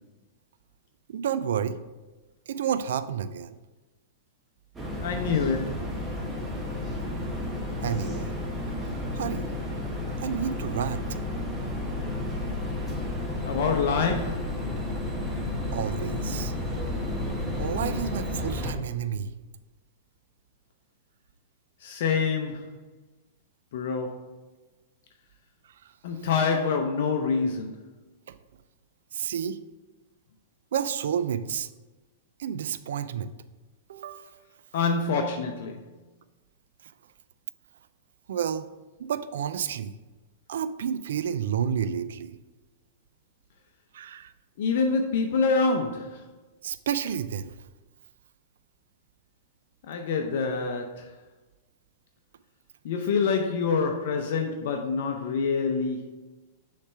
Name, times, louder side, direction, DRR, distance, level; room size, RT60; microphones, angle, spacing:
voice 1, 1.1-1.8 2.5-3.5 7.8-8.3 9.1-9.5 10.2-11.1 15.7-16.5 17.6-19.3 26.5-26.6 28.3-28.4 29.1-29.6 30.7-31.7 32.4-33.3 33.9-34.3 38.3-38.7 39.0-39.9 40.5-42.4 43.9-44.3 46.6-47.5, right 8 dB, 75° right, 13 dB, 0.4 m, -30 dB
sound 1, 4.7-18.7, left 1 dB, 15° right, 1.4 m, -32 dB
voice 2, 5.0-5.9 13.4-14.6 21.8-22.8 23.7-24.3 26.0-27.8 34.7-35.8 44.6-46.3 49.9-51.1 52.8-56.1, left 5 dB, 65° left, 3 dB, 0.6 m, -26 dB
6.5 x 3.3 x 5.6 m, 1.2 s
hypercardioid pair, 120°, 0 cm